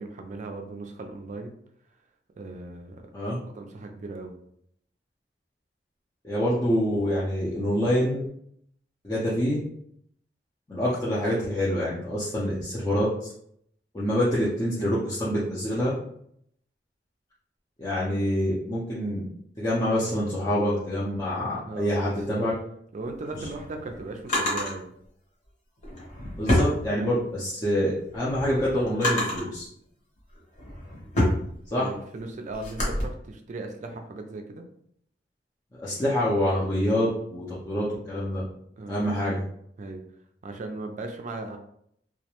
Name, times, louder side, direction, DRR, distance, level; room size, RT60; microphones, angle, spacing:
voice 1, 0.0-1.5 2.4-3.1 3.5-4.3 21.7-22.0 22.3-22.4 22.9-24.9 31.7-34.7 38.8-39.2 39.8-40.0 40.4-41.6, right 2 dB, 45° right, 4 dB, 0.4 m, -37 dB
voice 2, 6.2-8.3 9.0-9.6 10.7-13.1 13.9-15.9 17.8-19.2 19.6-22.5 23.4-23.5 26.4-29.6 31.7-31.9 35.8-38.4 38.9-39.4, equal, 20° left, -9 dB, 0.5 m, -26 dB
Drawer open or close, 23.1-24.7 25.8-27.4 27.9-29.6 30.2-33.0, left 1 dB, 45° left, 1.0 m, -28 dB
2.3 x 2.1 x 2.9 m, 0.70 s
head